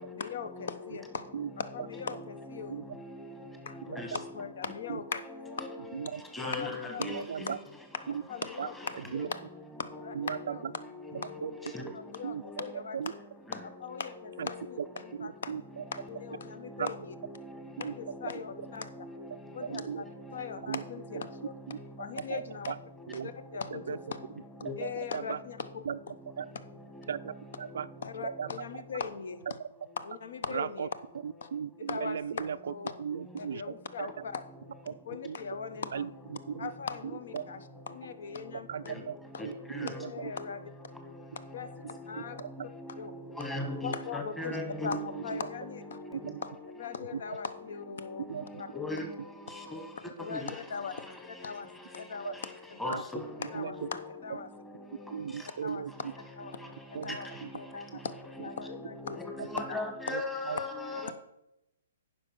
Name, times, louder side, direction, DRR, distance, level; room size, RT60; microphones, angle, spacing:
voice 1, 0.1-1.2 1.6-2.8 3.7-5.6 6.4-7.5 8.3-9.4 9.8-10.6 11.1-11.3 11.9-13.1 13.5-15.5 15.9-17.1 17.8-18.9 19.5-20.0 20.3-21.5 22.0-22.7 23.2-24.2 24.8-25.8 28.0-29.4 30.0-30.9 31.4-31.5 31.8-32.9 33.4-34.4 35.1-36.1 36.6-39.0 39.3-39.4 39.8-40.6 41.5-41.7 42.1-42.4 43.0-43.1 43.4-43.5 43.8-46.5 46.8-48.3 48.6-48.7 50.2-51.7 51.9-52.3 52.7-53.0 53.4-54.5 55.6-55.8 56.4-56.6 57.0-57.3 57.5-58.1 58.4-59.2 59.5-59.9 61.0-61.1, left 6 dB, 70° left, 0.8 m, -40 dB
voice 2, 6.3-7.2 11.7-11.8 19.0-19.1 24.7-24.8 39.4-39.9 42.9-43.0 43.4-45.0 48.7-49.1 49.7-49.8 50.3-50.5 52.8-53.2 53.8-53.9 58.4-58.8 59.2-61.1, left 2 dB, 10° left, 1.5 m, -36 dB
voice 3, 7.0-7.6 8.1-8.2 8.6-8.7 9.1-9.3 10.2-10.6 11.4-11.5 11.8-11.9 12.2-12.4 12.9-13.1 14.4-14.5 14.8-14.9 15.2-15.8 16.8-16.9 17.8-17.9 18.3-18.4 19.7-20.0 20.7-20.8 21.7-21.8 22.2-22.4 22.7-22.8 23.1-23.3 23.7-24.0 24.6-24.9 25.1-25.4 25.9-26.0 26.4-26.5 27.1-27.9 28.2-28.5 30.5-30.9 31.2-32.6 33.0-33.6 34.0-34.1 34.9-35.0 35.2-35.4 35.9-36.1 36.5-36.7 37.3-37.4 38.7-39.1 39.4-40.3 42.4-42.5 45.3-45.4 46.1-46.4 48.3-48.6 52.2-52.3 52.9-53.0 53.4-53.9 55.1-55.9 56.9-57.5 59.4-59.5 60.1-60.6, right 7 dB, 70° right, 0.3 m, -36 dB
9.7 x 5.7 x 6.1 m
hypercardioid pair, 140°, 0 cm